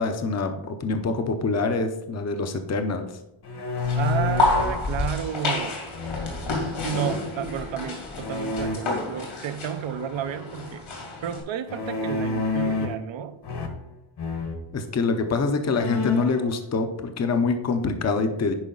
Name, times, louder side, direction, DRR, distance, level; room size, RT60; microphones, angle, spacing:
voice 1, 0.0-3.1 14.7-18.5, left 4 dB, 35° left, 7 dB, 0.7 m, -25 dB
sound 1, 3.4-4.8 5.9-6.7 8.2-8.8 11.7-13.1 13.4-13.9 14.2-14.6 15.2-15.3 15.6-16.4, left 3 dB, 55° left, 1.4 m, -29 dB
sound 2, 3.8-11.4, left 2 dB, 75° left, 2.8 m, -29 dB
voice 2, 3.9-5.8 6.8-10.9 11.2-13.4, right 9 dB, 70° right, 11 dB, 0.8 m, -31 dB
10.5 x 5.1 x 3.9 m, 0.88 s
wide cardioid pair, 170°, 47 cm